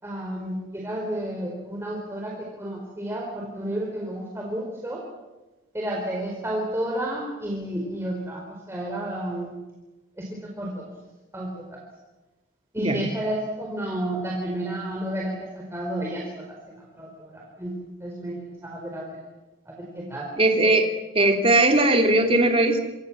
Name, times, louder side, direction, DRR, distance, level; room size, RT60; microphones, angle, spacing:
voice 1, 0.0-5.0 5.7-9.5 10.2-10.9 11.3-11.8 12.7-17.7 18.0-18.3 18.6-19.2 19.6-20.3, right 1 dB, 15° right, -1 dB, 4.7 m, -31 dB
voice 2, 20.4-22.8, right 2 dB, 30° right, 4 dB, 3.0 m, -19 dB
26.5 x 26.0 x 7.5 m, 1.1 s
head